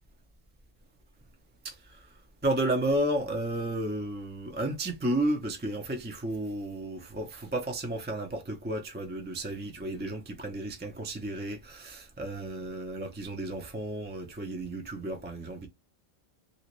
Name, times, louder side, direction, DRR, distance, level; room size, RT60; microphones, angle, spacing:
voice 1, 1.6-2.1 2.4-15.7, right 1 dB, 10° right, 0.6 m, -32 dB
3.1 x 2.8 x 3.0 m
omnidirectional pair, 1.1 m